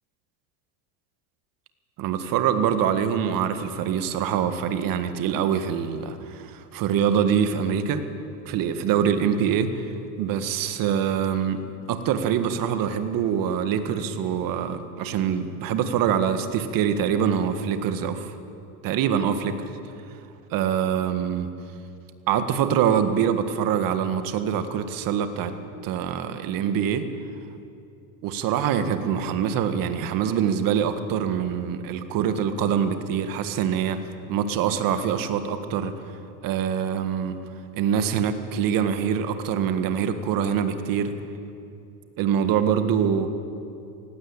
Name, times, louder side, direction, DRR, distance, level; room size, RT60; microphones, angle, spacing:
voice 1, 2.0-8.0 8.4-9.9 10.2-11.6 11.9-18.4 18.8-19.6 20.5-21.5 22.3-25.5 25.8-27.1 28.2-34.0 34.3-36.0 36.4-37.4 37.7-41.2 42.2-43.3, right 8 dB, 50° right, 9 dB, 1.7 m, -24 dB
18.0 x 16.5 x 8.8 m, 2.6 s
supercardioid pair, 130°, 43 cm